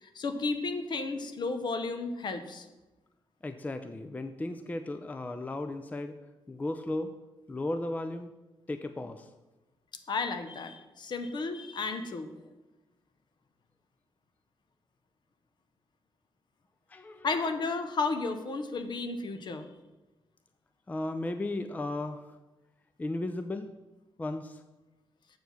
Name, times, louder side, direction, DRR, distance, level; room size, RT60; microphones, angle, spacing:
voice 1, 0.0-2.7 10.1-12.3 17.2-19.7, left 3 dB, 55° left, 8 dB, 0.8 m, -33 dB
voice 2, 3.4-6.2 6.5-7.1 7.5-8.3 8.7-9.3 16.9-17.5 20.9-22.4 23.0-23.7 24.2-24.6, left 2 dB, 15° left, 9 dB, 0.4 m, -35 dB
7.7 x 4.6 x 6.9 m, 1.1 s
cardioid pair, 120°, 9 cm